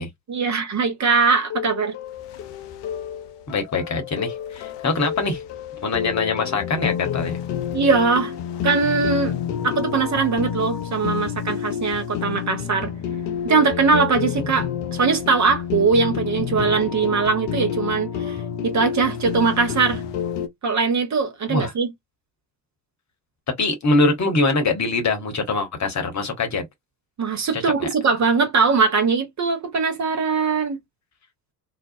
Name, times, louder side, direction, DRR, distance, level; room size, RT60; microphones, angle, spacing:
voice 1, 0.3-1.9 7.7-8.3 8.6-9.4 9.6-12.9 13.4-18.4 18.6-20.0 20.6-21.9 27.2-30.8, right 4 dB, 35° right, 0.8 m, -21 dB
sound 1, 1.5-20.5, left 8 dB, 60° left, 0.6 m, -29 dB
voice 2, 3.5-5.4 5.8-7.4 21.5-21.7 23.6-26.6 27.5-27.9, left 3 dB, 35° left, 1.1 m, -23 dB
2.4 x 2.0 x 2.5 m
figure-of-eight pair, 50°, 49 cm